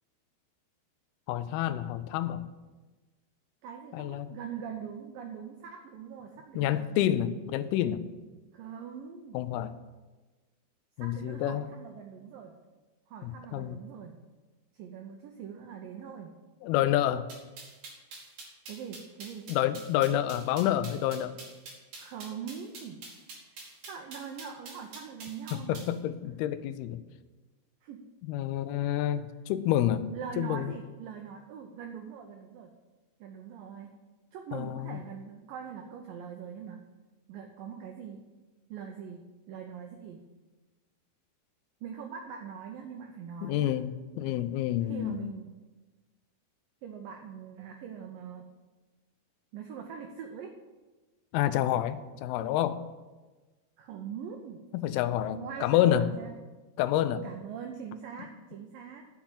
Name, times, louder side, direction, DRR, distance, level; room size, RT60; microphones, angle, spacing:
voice 1, 1.3-2.4 3.9-4.3 6.6-8.0 9.3-9.7 11.0-11.6 13.2-13.8 16.6-17.3 19.5-21.4 25.5-27.0 28.3-30.7 34.5-35.0 43.4-45.2 51.3-52.8 54.7-56.1 56.8-57.2, left 12 dB, 85° left, 11 dB, 2.2 m, -28 dB
voice 2, 3.6-7.1 8.5-9.4 11.0-12.6 13.1-14.2 14.7-16.3 18.7-19.5 22.0-23.0 23.5-25.8 27.8-28.0 30.1-32.7 33.2-34.0 34.3-36.8 37.3-38.3 38.7-39.2 39.5-40.2 41.8-43.8 44.8-45.5 46.8-48.5 49.5-50.5 53.8-54.6 55.3-56.3 57.2-59.1, right 7 dB, 80° right, 3 dB, 2.0 m, -42 dB
sound 1, 17.3-25.9, right 3 dB, 55° right, 3.9 m, -45 dB
10.0 x 5.9 x 7.4 m, 1.2 s
omnidirectional pair, 5.0 m